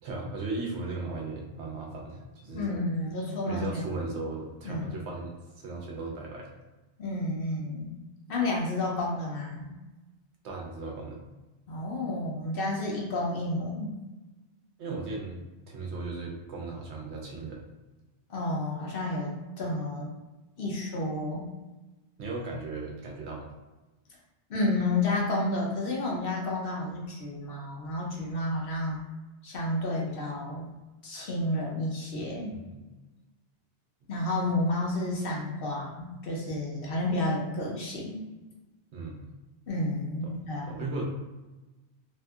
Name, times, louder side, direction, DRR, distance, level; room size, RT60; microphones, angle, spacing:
voice 1, 0.0-2.7 3.5-6.5 10.4-11.2 14.8-15.4 15.7-17.7 22.2-23.5 32.5-32.9 38.9-39.3 40.2-40.3 40.7-41.0, right 3 dB, 80° right, -1 dB, 1.0 m, -37 dB
voice 2, 2.5-3.8 4.6-4.9 7.0-7.9 8.3-9.7 11.7-13.9 18.3-20.1 20.6-21.5 24.5-29.0 29.4-30.6 31.0-32.6 34.1-38.2 39.7-40.9, left 2 dB, 60° left, -3 dB, 0.8 m, -31 dB
2.7 x 2.6 x 2.3 m, 1.1 s
omnidirectional pair, 1.2 m